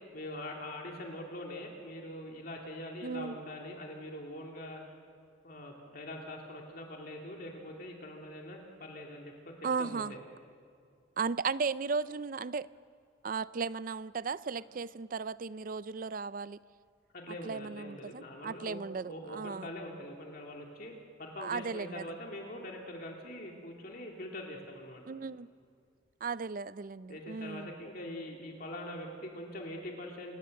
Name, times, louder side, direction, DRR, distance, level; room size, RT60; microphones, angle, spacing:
voice 1, 0.1-4.8 5.4-10.2 17.1-20.9 21.2-25.0 27.1-30.4, left 1 dB, 50° left, 0 dB, 2.7 m, -43 dB
voice 2, 3.0-3.4 9.6-10.1 11.2-12.7 13.2-16.6 17.4-19.7 21.4-22.0 25.1-25.5 26.2-27.7, right 5 dB, 45° right, 17 dB, 0.4 m, -36 dB
28.5 x 17.5 x 6.6 m, 2.3 s
head